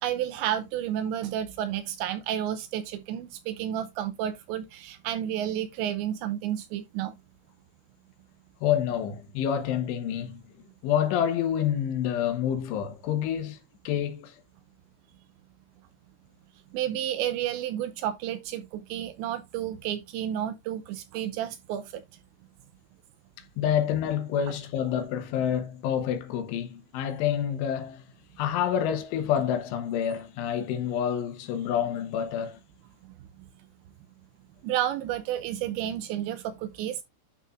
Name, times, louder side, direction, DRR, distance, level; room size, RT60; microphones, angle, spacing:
voice 1, 0.0-7.1 16.7-22.0 34.6-37.0, right 11 dB, 85° right, 2.7 m, -31 dB
voice 2, 8.6-10.4 10.8-13.6 13.9-14.4 23.6-28.0 28.4-32.6, left 9 dB, 80° left, 3.5 m, -28 dB
12.0 x 4.2 x 2.5 m
omnidirectional pair, 5.6 m